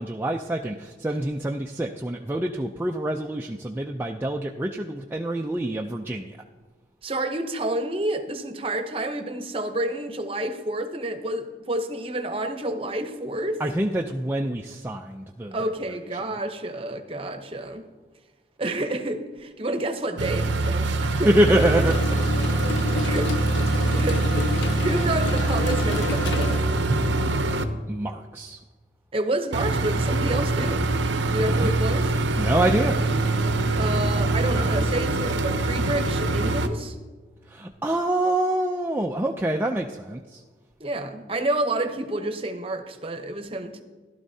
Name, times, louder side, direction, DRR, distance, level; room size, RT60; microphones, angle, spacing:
voice 1, 0.0-6.4 13.6-15.7 16.1-16.2 21.0-21.9 27.9-28.6 31.5-31.7 32.4-32.9 37.5-40.4, right 1 dB, 10° right, 1 dB, 0.3 m, -26 dB
voice 2, 7.0-13.6 15.5-17.8 18.6-21.3 21.8-21.9 23.0-23.3 23.9-26.6 29.1-30.8 31.3-32.1 33.8-36.9 40.8-43.8, right 1 dB, 30° right, 7 dB, 0.8 m, -29 dB
sound 1, 20.2-27.6 29.5-36.7, right 2 dB, 80° right, 0.8 m, -24 dB
sound 2, 21.6-26.6, left 5 dB, 75° left, 0.7 m, -30 dB
16.5 x 12.0 x 2.7 m, 1.4 s
head